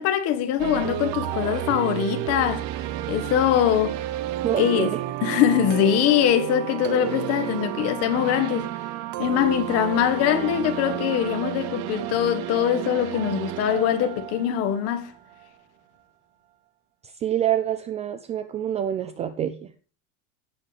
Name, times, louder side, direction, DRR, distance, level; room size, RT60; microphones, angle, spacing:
voice 1, 0.0-2.7 3.1-4.0 4.5-4.9 5.2-8.7 9.2-15.1, left 10 dB, 40° left, 1.7 m, -23 dB
sound 1, 0.6-15.5, right 13 dB, 50° right, 0.9 m, -31 dB
voice 2, 4.4-5.0 17.0-19.7, right 10 dB, 20° right, 0.4 m, -27 dB
16.5 x 7.7 x 3.4 m
cardioid pair, 180°, 38 cm